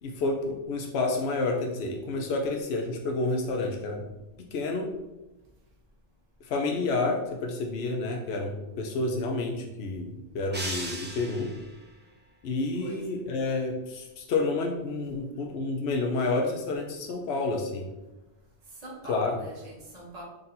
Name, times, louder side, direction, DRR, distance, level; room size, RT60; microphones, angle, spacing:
voice 1, 0.0-4.1 4.5-4.9 6.4-11.5 12.4-17.9 19.1-19.3, left 3 dB, 80° left, 1 dB, 0.8 m, -29 dB
sound 1, 10.5-11.8, right 1 dB, 20° right, 0.3 m, -36 dB
voice 2, 12.8-13.2 18.7-20.2, right 1 dB, 40° right, -4 dB, 1.2 m, -43 dB
3.9 x 2.6 x 4.1 m, 1.0 s
omnidirectional pair, 1.0 m